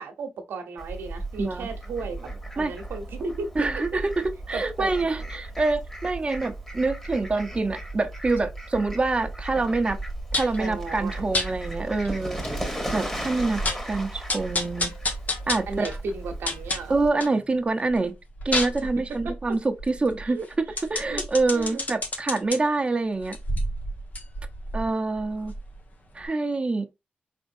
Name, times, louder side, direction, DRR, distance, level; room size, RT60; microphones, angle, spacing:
voice 1, 0.0-2.2 2.5-3.5 4.5-4.9 10.6-11.2 15.7-16.9 20.2-20.5 21.1-21.2 21.5-21.8, right 4 dB, 85° right, 0.9 m, -34 dB
Fowl, 0.8-17.1, right 1 dB, 10° left, 2.0 m, -36 dB
voice 2, 3.5-10.0 10.3-12.4 12.9-14.9 15.5-16.0 16.9-18.2 18.4-20.4 20.9-23.4 24.7-25.5 26.1-26.9, right 3 dB, 30° right, 0.7 m, -26 dB
sound 1, 10.3-10.6 11.3-11.5 12.0-12.1 12.4-12.5 13.0-13.1 13.4-13.9 14.3-17.4 17.8-22.6 23.2-25.9 26.2-26.3, left 2 dB, 50° left, 1.3 m, -30 dB
4.3 x 3.5 x 2.6 m
cardioid pair, 60°, 4 cm